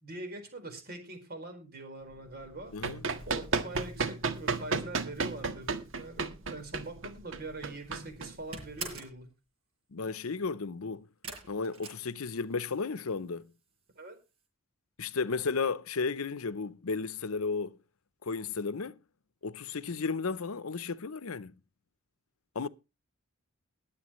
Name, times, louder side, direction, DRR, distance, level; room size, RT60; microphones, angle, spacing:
voice 1, 0.0-2.7 3.3-9.3 14.0-14.2, right 2 dB, 45° right, 4.5 m, -43 dB
Run, 2.5-8.9, right 4 dB, 65° right, 1.6 m, -33 dB
voice 2, 2.7-3.0 9.9-11.1 11.5-13.5 15.0-17.8 18.2-19.0 19.4-21.6 22.5-22.7, left 4 dB, 80° left, 0.7 m, -34 dB
sound 1, 7.5-7.9 8.2-9.2 11.2-12.7 13.0-13.6 13.9-14.0 14.4-14.5, right 4 dB, 85° right, 6.8 m, -43 dB
21.0 x 8.5 x 3.1 m
head